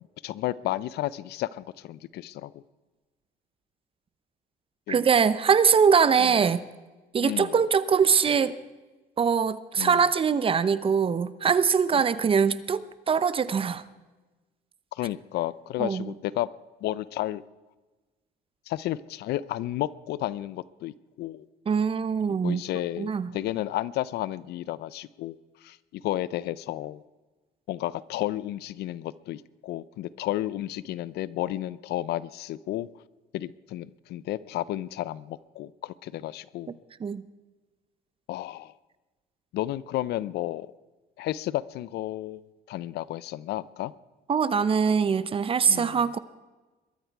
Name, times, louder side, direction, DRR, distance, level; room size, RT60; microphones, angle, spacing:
voice 1, 0.2-2.6 4.9-5.0 6.2-6.3 7.2-7.5 9.8-10.0 14.9-16.5 16.8-17.4 18.7-21.5 22.3-27.0 27.7-32.9 33.3-36.8 38.3-38.7 39.5-40.7 41.2-42.4 42.7-43.9 45.7-46.0, left 14 dB, 75° left, 19 dB, 0.6 m, -32 dB
voice 2, 4.9-6.7 7.1-8.5 9.2-13.8 15.8-16.1 21.7-22.6 23.0-23.3 37.0-37.2 44.3-46.2, right 6 dB, 30° right, 15 dB, 0.8 m, -23 dB
22.0 x 13.0 x 4.7 m, 1.2 s
cardioid pair, 110°, 17 cm